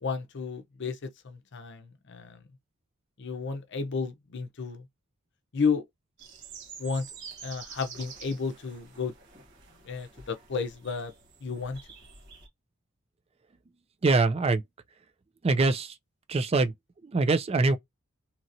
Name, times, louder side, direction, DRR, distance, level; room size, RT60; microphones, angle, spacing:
voice 1, 0.0-2.4 3.2-4.9 5.5-5.9 6.8-7.1 7.4-9.1 9.8-11.1 11.4-11.8, left 5 dB, 55° left, 0.6 m, -32 dB
sound 1, 6.2-12.5, right 6 dB, 55° right, 1.1 m, -48 dB
voice 2, 14.0-14.6 15.4-16.0 16.3-16.7 17.0-17.8, right 3 dB, 30° right, 0.4 m, -23 dB
2.9 x 2.8 x 2.5 m
head